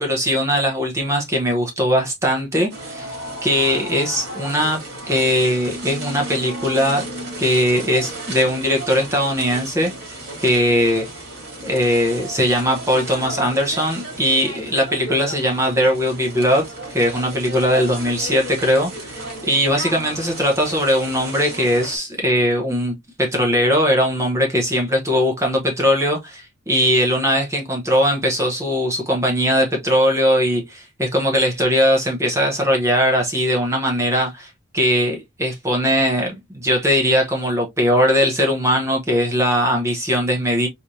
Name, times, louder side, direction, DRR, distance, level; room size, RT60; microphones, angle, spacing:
voice 1, 0.0-7.1 7.4-11.1 11.6-40.7, equal, 15° right, 0.9 m, -20 dB
sound 1, 2.7-22.0, right 2 dB, 55° right, 2.4 m, -34 dB
4.2 x 3.2 x 2.7 m
head